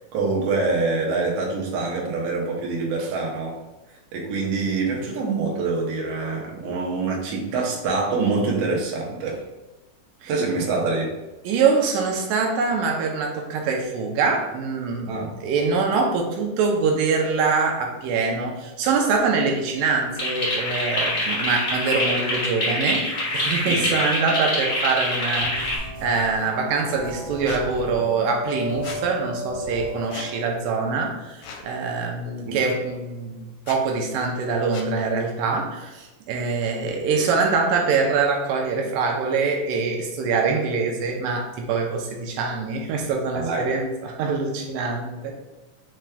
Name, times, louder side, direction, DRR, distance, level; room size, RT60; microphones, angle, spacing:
voice 1, 0.1-3.5 4.1-9.4 10.3-11.1 15.1-15.3 23.7-23.9 32.4-32.6 43.3-43.7, right 3 dB, 70° right, -2 dB, 1.6 m, -25 dB
voice 2, 11.4-15.1 15.4-45.3, right 4 dB, 85° right, 1 dB, 2.2 m, -24 dB
sound 1, 20.2-25.8, left 1 dB, 40° left, 1.0 m, -25 dB
sound 2, 25.4-30.4, equal, 45° right, 1.5 m, -34 dB
Squeak, 27.5-27.6 28.8-29.0 30.1-30.3 31.4-31.7 32.7-32.8 33.6-33.8 34.7-34.9, left 5 dB, 80° left, 2.1 m, -37 dB
5.0 x 4.4 x 2.3 m, 1.1 s
omnidirectional pair, 3.8 m